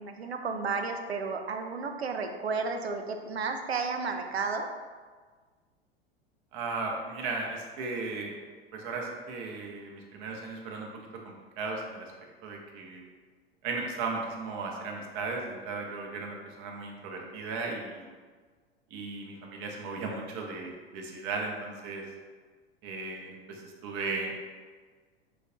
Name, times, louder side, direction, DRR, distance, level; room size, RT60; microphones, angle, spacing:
voice 1, 0.0-4.7, right 4 dB, 80° right, 4 dB, 0.5 m, -32 dB
voice 2, 6.5-8.4 8.7-10.9 11.2-12.1 12.4-13.0 13.6-18.1 18.9-22.1 22.8-24.4, right 3 dB, 40° right, 1 dB, 0.7 m, -36 dB
6.4 x 2.4 x 2.6 m, 1.5 s
figure-of-eight pair, 85°, 31 cm